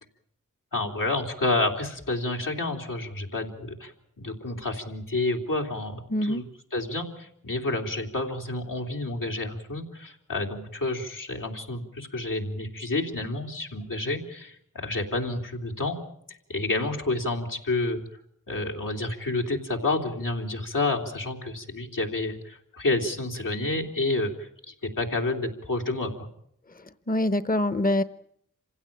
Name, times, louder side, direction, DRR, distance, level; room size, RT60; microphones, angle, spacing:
voice 1, 0.7-6.4 6.7-16.0 16.5-18.0 18.5-26.3, left 2 dB, 85° left, 0 dB, 3.2 m, -29 dB
voice 2, 6.1-6.4 27.1-28.0, left 1 dB, 25° left, 13 dB, 0.9 m, -24 dB
27.0 x 16.5 x 8.7 m, 0.71 s
wide cardioid pair, 50°, 32 cm